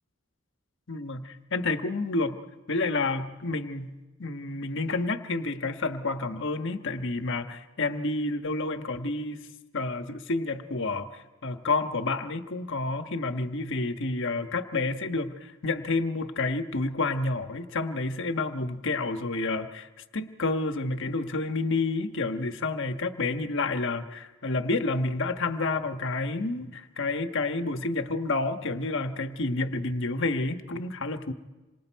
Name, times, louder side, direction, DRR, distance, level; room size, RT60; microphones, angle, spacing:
voice 1, 0.9-2.4 2.7-3.9 4.2-9.4 9.7-11.1 11.4-19.9 20.1-31.3, left 3 dB, 60° left, 7 dB, 1.3 m, -29 dB
27.5 x 25.5 x 4.7 m, 1.2 s
head